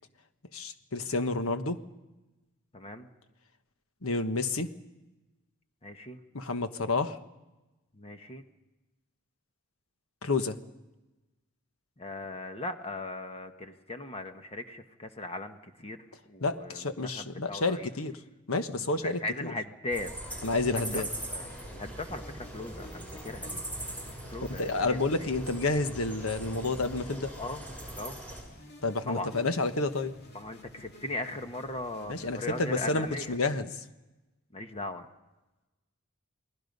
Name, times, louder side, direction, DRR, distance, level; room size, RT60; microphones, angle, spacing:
voice 1, 0.5-1.8 4.0-4.7 6.3-7.2 10.2-10.6 16.4-18.1 18.5-19.5 20.4-21.1 24.6-27.3 28.8-30.1 32.1-33.7, left 3 dB, 70° left, 9 dB, 1.3 m, -30 dB
voice 2, 2.7-3.1 5.8-6.2 8.0-8.4 12.0-17.9 18.9-20.1 20.7-21.0 21.3-23.6 24.3-25.3 27.4-27.6 28.0-28.2 29.1-29.3 30.3-33.4 34.5-35.1, left 2 dB, 30° left, 6 dB, 1.3 m, -38 dB
sound 1, 19.9-28.4, right 1 dB, 5° left, 6.4 m, -41 dB
sound 2, 20.4-33.4, left 1 dB, 50° left, 2.2 m, -53 dB
29.5 x 19.5 x 5.4 m, 1.1 s
head